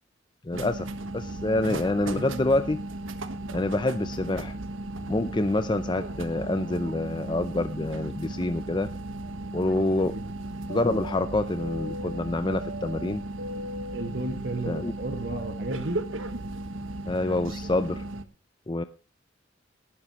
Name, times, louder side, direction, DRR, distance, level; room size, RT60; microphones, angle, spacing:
voice 1, 0.4-0.9 1.1-2.8 3.5-4.6 5.1-8.9 9.5-10.1 10.7-13.2 14.7-14.9 17.1-18.1 18.7-18.8, left 2 dB, 25° left, 11 dB, 0.5 m, -27 dB
sound 1, 0.5-18.2, right 1 dB, 80° right, 1.4 m, -35 dB
voice 2, 13.9-16.0, right 2 dB, 60° right, 4 dB, 2.0 m, -33 dB
18.5 x 12.5 x 3.1 m, 0.32 s
head